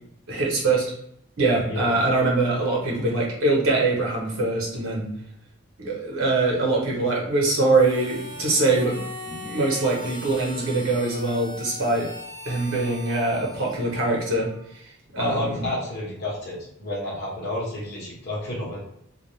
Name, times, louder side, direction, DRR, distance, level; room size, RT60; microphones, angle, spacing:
voice 1, 0.3-0.8 1.4-5.1 5.8-12.1 12.4-14.5 15.1-15.7, right 2 dB, 80° right, -2 dB, 0.9 m, -23 dB
Harmonica, 7.7-14.7, left 1 dB, 55° right, 1.0 m, -40 dB
voice 2, 15.2-18.8, left 1 dB, 50° left, -5 dB, 1.0 m, -30 dB
2.4 x 2.1 x 3.1 m, 0.72 s
head